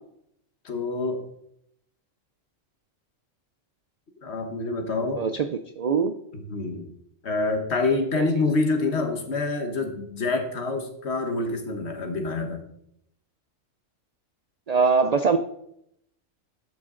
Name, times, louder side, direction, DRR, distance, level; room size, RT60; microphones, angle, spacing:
voice 1, 0.6-1.3 4.2-5.2 6.3-6.9 7.2-12.6, left 3 dB, 55° left, 6 dB, 1.5 m, -27 dB
voice 2, 5.2-5.5 5.8-6.1 8.2-8.3 14.7-15.4, right 5 dB, 60° right, 8 dB, 0.4 m, -22 dB
12.0 x 6.4 x 3.8 m, 0.75 s
omnidirectional pair, 1.3 m